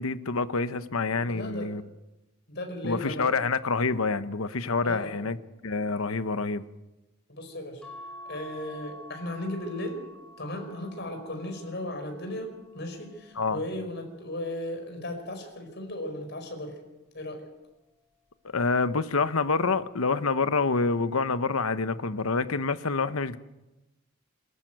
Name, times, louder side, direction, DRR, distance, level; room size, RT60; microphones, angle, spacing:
voice 1, 0.0-1.8 2.8-5.4 5.6-6.6 13.4-13.6 18.5-23.4, left 4 dB, 80° left, 1.0 m, -27 dB
voice 2, 1.1-1.7 2.5-3.3 4.8-5.2 7.3-7.8 8.2-10.0 10.4-16.8 17.1-17.4, left 1 dB, 50° left, 5.2 m, -36 dB
sound 1, 7.8-14.4 15.1-16.5 17.7-18.1 18.5-18.6, left 1 dB, 5° left, 4.7 m, -49 dB
24.5 x 14.0 x 9.2 m
head